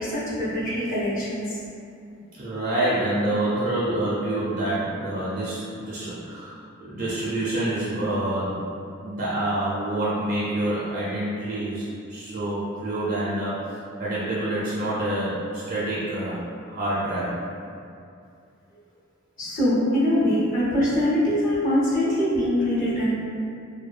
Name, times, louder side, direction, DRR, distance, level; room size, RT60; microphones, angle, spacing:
voice 1, 0.0-1.6 19.4-23.1, equal, 40° left, -8 dB, 0.6 m, -23 dB
voice 2, 2.4-6.5 6.8-8.7 9.0-13.7 14.0-17.4, right 1 dB, 40° right, -9 dB, 0.4 m, -27 dB
2.7 x 2.1 x 2.3 m, 2.5 s
head